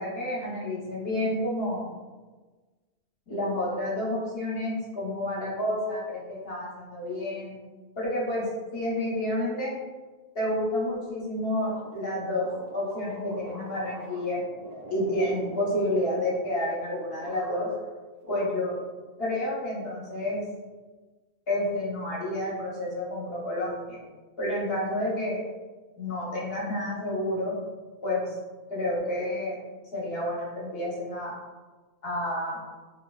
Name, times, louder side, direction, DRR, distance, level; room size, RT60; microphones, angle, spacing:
voice 1, 0.0-1.9 3.3-7.6 8.0-8.4 8.7-9.7 10.3-12.4 12.7-14.4 14.9-17.7 18.3-18.7 19.2-20.4 21.5-24.0 24.4-25.4 26.0-27.5 28.0-28.3 28.7-29.6 29.9-31.3 32.0-32.6, left 1 dB, 60° left, -6 dB, 1.2 m, -29 dB
sound 1, 11.6-16.9 17.2-17.9 18.2-19.1, right 1 dB, 55° right, 0.4 m, -45 dB
3.1 x 2.8 x 2.3 m, 1.3 s
omnidirectional pair, 1.1 m